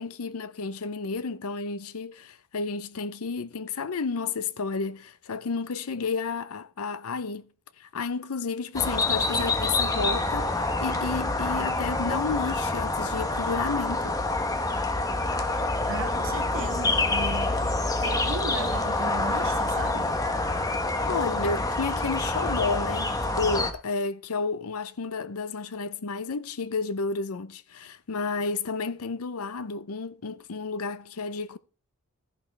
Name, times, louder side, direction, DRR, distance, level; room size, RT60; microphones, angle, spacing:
voice 1, 0.0-7.5 7.8-14.2 21.1-31.6, left 4 dB, 80° left, 0.6 m, -31 dB
sound 1, 8.7-23.7, left 2 dB, 15° left, 1.0 m, -27 dB
voice 2, 15.9-17.7 18.0-20.2, right 3 dB, 60° right, 0.9 m, -36 dB
13.5 x 11.0 x 3.4 m
head